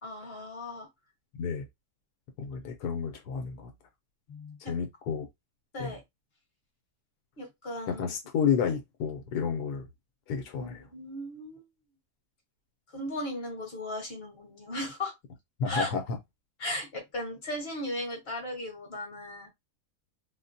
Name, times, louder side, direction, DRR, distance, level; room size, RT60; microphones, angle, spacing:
voice 1, 0.0-0.9 4.3-4.7 5.7-6.0 7.4-8.0 10.6-11.6 12.9-15.1 15.6-15.9 16.6-19.5, left 1 dB, 40° left, 1.5 m, -36 dB
voice 2, 1.3-1.6 2.4-3.7 4.6-5.3 5.8-5.9 7.9-9.9 10.3-10.9 15.6-16.0, left 6 dB, 90° left, 1.3 m, -31 dB
3.9 x 2.2 x 2.6 m
omnidirectional pair, 1.7 m